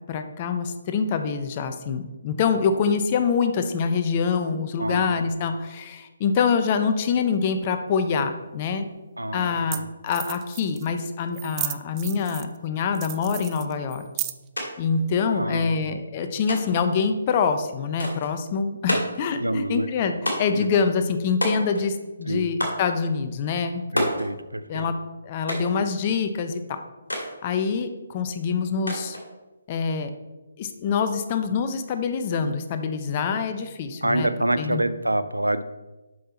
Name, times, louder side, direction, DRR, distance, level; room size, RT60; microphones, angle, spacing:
voice 1, 0.1-8.8 9.3-14.1 14.8-23.8 24.7-25.0 25.2-26.8 27.2-29.2 29.7-30.1 30.6-34.3 34.6-34.8, left 5 dB, 30° left, 8 dB, 0.7 m, -25 dB
voice 2, 4.8-5.2 9.2-9.9 15.3-15.9 18.9-19.0 19.4-19.9 20.5-20.7 22.3-22.5 23.9-24.9 34.0-35.6, right 1 dB, 85° right, 13 dB, 0.5 m, -27 dB
sound 1, 8.6-8.7 9.5-9.6 9.7-9.8 10.1-10.9 11.3-12.6 12.9-14.6, right 15 dB, 20° right, 0.3 m, -33 dB
sound 2, 14.6-14.7 14.9-15.7 16.5-16.9 18.0-18.3 18.9-19.3 20.3-20.7 21.4-21.9 22.6-22.9 24.0-24.3 25.5-25.8 27.1-27.3 28.9-29.3, equal, 75° left, 2.3 m, -28 dB
7.6 x 5.6 x 4.3 m, 1.1 s
figure-of-eight pair, 140°, 0 cm